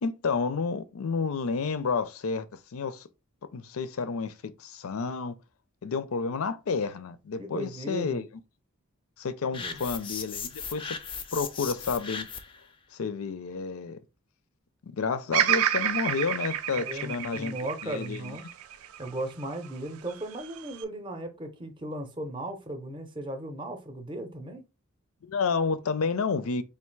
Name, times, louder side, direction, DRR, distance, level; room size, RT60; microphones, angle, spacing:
voice 1, 0.0-2.5 2.7-3.1 3.5-5.4 5.8-8.3 9.2-11.0 11.3-12.3 12.9-14.0 14.8-17.5 17.8-18.4 25.2-26.6, left 5 dB, 75° left, 0.5 m, -30 dB
voice 2, 7.4-8.2 9.5-9.8 16.7-18.4 18.8-24.6, right 1 dB, 20° right, 0.6 m, -37 dB
sound 1, 9.5-12.6, left 6 dB, 25° left, 0.4 m, -37 dB
Bird vocalization bird call bird song, 15.3-19.5 20.1-20.8, right 10 dB, 80° right, 0.4 m, -29 dB
3.5 x 2.5 x 4.5 m
head